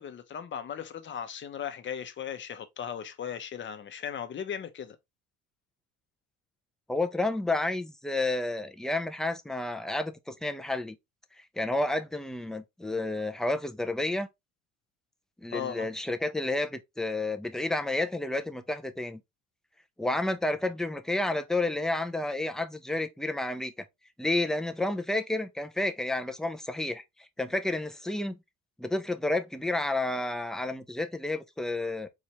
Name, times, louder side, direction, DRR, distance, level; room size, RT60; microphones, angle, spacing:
voice 1, 0.0-5.0 15.5-15.9, left 8 dB, 35° left, 0.8 m, -37 dB
voice 2, 6.9-11.0 11.6-14.3 15.4-19.2 20.0-23.7 24.2-28.4 28.8-32.1, left 2 dB, ahead, 0.5 m, -30 dB
4.2 x 2.5 x 3.0 m
supercardioid pair, 95°, 33 cm